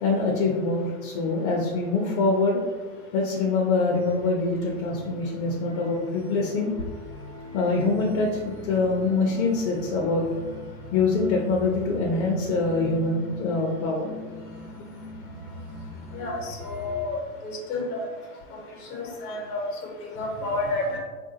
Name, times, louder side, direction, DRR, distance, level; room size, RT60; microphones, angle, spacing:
voice 1, 0.0-2.6 3.1-6.7 7.5-10.3 10.9-14.1 18.7-18.8, left 3 dB, 65° left, -1 dB, 0.7 m, -24 dB
sound 1, 3.9-17.1, left 2 dB, 10° left, 0.3 m, -41 dB
voice 2, 16.1-18.1 18.9-21.0, left 2 dB, 85° left, 0 dB, 1.1 m, -30 dB
3.1 x 2.6 x 2.7 m, 1.4 s
hypercardioid pair, 115°, 44 cm